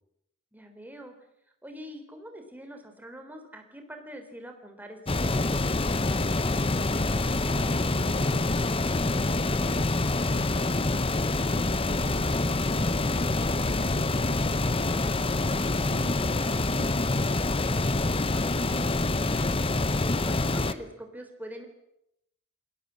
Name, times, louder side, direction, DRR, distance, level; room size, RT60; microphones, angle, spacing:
voice 1, 0.5-1.2 1.6-6.3 14.0-14.2 18.1-19.6 20.1-21.7, equal, 10° right, 4 dB, 3.6 m, -44 dB
sound 1, 5.1-20.7, left 2 dB, 25° left, 0.9 m, -26 dB
voice 2, 13.6-17.4, right 1 dB, 75° right, 4 dB, 2.9 m, -48 dB
29.0 x 20.5 x 7.5 m, 0.82 s
head